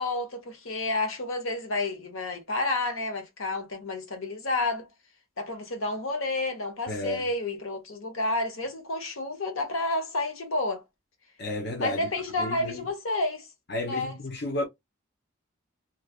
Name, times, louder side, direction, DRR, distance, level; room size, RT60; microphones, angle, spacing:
voice 1, 0.0-4.9 5.4-10.8 11.8-13.4 13.8-14.1, left 2 dB, 75° left, 1.0 m, -30 dB
voice 2, 6.9-7.2 11.4-12.0 12.4-12.8 13.7-14.6, left 1 dB, 50° left, 0.7 m, -32 dB
3.1 x 2.4 x 2.3 m
head